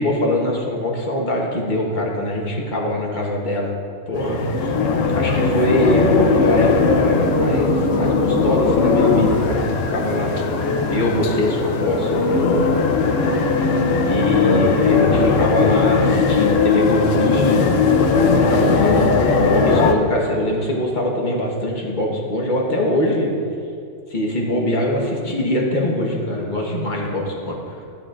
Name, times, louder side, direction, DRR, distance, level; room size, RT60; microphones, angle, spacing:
voice 1, 0.0-3.7 4.1-4.7 5.1-10.3 10.9-12.6 13.1-13.4 14.0-17.8 18.1-19.1 19.4-23.3 24.1-27.8, left 1 dB, 40° left, -2 dB, 1.4 m, -22 dB
sound 1, 4.1-19.9, left 4 dB, 75° left, 1.0 m, -18 dB
13.0 x 8.6 x 2.5 m, 2.4 s
omnidirectional pair, 1.3 m